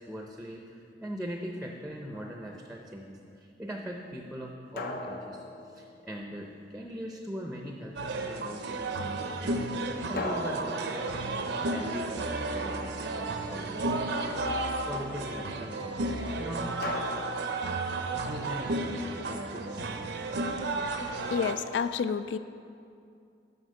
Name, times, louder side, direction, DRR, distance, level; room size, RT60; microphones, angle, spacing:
voice 1, 0.0-16.8 18.3-20.2, equal, 5° right, 1 dB, 0.6 m, -41 dB
sound 1, 2.1-2.7 4.8-6.6 10.2-12.8 16.8-18.5, left 2 dB, 60° left, 0.7 m, -39 dB
sound 2, 8.0-21.5, right 2 dB, 65° right, 0.6 m, -33 dB
voice 2, 21.3-22.4, left 6 dB, 80° left, 12 dB, 0.3 m, -29 dB
7.9 x 5.7 x 6.4 m, 2.4 s
head